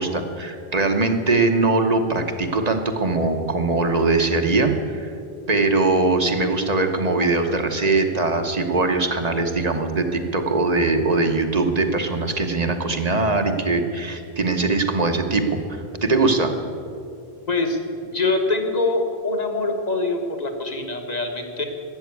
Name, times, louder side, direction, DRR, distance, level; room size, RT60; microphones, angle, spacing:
voice 1, 0.0-5.1 5.5-16.5, right 3 dB, 40° right, 6 dB, 1.0 m, -21 dB
voice 2, 17.5-17.8 18.1-21.6, left 3 dB, 40° left, 4 dB, 1.5 m, -24 dB
13.0 x 8.9 x 8.4 m, 2.6 s
omnidirectional pair, 1.1 m